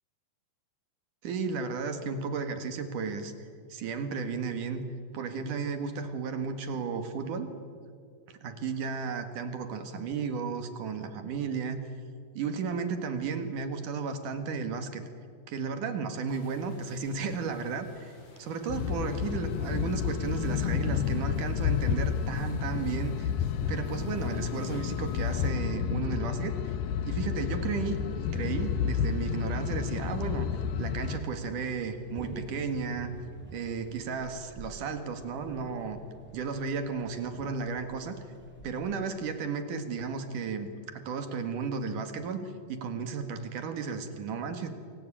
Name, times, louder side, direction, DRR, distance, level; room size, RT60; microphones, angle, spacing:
voice 1, 1.2-3.3 3.7-4.8 5.1-7.5 8.3-11.8 12.3-15.1 15.5-18.1 18.4-23.3 23.7-26.8 27.0-30.5 30.8-33.1 33.5-36.0 36.3-38.2 38.6-44.7, right 5 dB, 60° right, 8 dB, 3.1 m, -34 dB
sound 1, 16.3-25.5, left 1 dB, 45° left, 4.6 m, -51 dB
sound 2, 18.7-31.2, left 8 dB, 75° left, 2.5 m, -30 dB
sound 3, 28.2-38.7, equal, 5° right, 4.4 m, -49 dB
28.5 x 23.0 x 8.8 m, 2.3 s
omnidirectional pair, 4.3 m